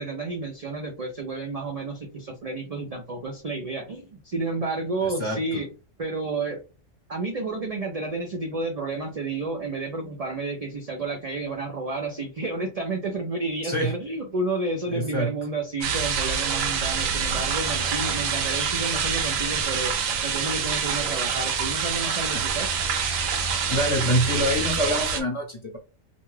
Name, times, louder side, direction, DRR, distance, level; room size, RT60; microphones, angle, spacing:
voice 1, 0.0-5.7 6.0-6.6 7.1-20.0 20.2-22.7, right 3 dB, 50° right, 0.4 m, -31 dB
voice 2, 5.0-5.6 13.6-13.9 14.9-15.3 22.3-22.4 23.7-25.8, equal, 25° left, 0.9 m, -26 dB
sound 1, 15.8-25.2, right 6 dB, 80° right, 1.0 m, -26 dB
2.5 x 2.2 x 3.2 m
omnidirectional pair, 1.3 m